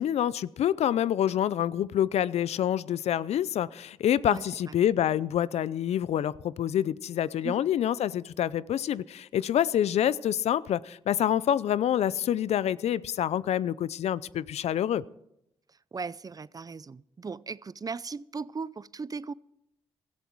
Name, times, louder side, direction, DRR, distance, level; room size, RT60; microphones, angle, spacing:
voice 1, 0.0-15.0, left 10 dB, 70° left, 0.5 m, -27 dB
voice 2, 4.2-4.7 7.4-7.6 15.9-19.3, right 4 dB, 35° right, 0.5 m, -37 dB
16.5 x 13.5 x 4.6 m
supercardioid pair, 55°, 11 cm